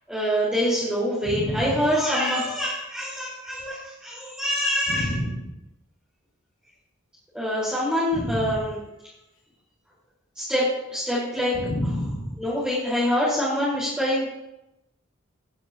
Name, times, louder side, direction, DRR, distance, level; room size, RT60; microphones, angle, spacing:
voice 1, 0.1-5.2 7.3-8.8 10.4-11.9 12.4-14.3, equal, 5° right, -11 dB, 5.2 m, -25 dB
voice 2, 1.2-1.6 4.9-5.4 8.1-8.6 11.5-12.3, equal, 85° left, -1 dB, 2.7 m, -28 dB
18.5 x 12.0 x 3.1 m, 0.91 s
head